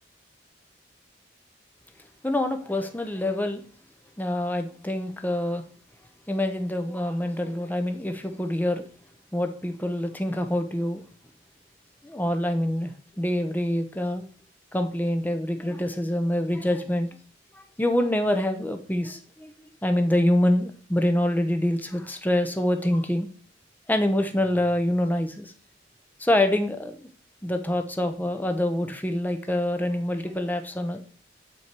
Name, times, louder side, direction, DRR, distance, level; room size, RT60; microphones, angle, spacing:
voice 1, 2.2-3.6 4.2-5.6 6.3-8.8 9.3-11.0 12.0-14.2 14.7-17.1 17.5-19.5 19.8-23.3 23.9-25.5 26.2-27.1 27.4-31.0, left 1 dB, 10° left, 6 dB, 0.7 m, -26 dB
7.0 x 5.9 x 4.5 m, 0.41 s
head